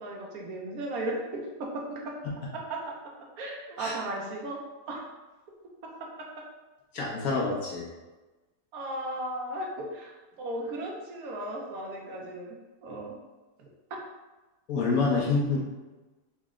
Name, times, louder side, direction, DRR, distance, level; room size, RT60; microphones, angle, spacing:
voice 1, 0.0-2.2 2.5-2.9 3.4-4.6 4.9-5.0 6.0-6.4 8.7-12.6 12.8-13.2 13.6-13.7, right 1 dB, 80° right, -1 dB, 1.2 m, -36 dB
voice 2, 6.9-7.9 14.7-15.6, left 3 dB, 70° left, -3 dB, 1.3 m, -27 dB
4.0 x 2.1 x 3.6 m, 1.2 s
omnidirectional pair, 1.6 m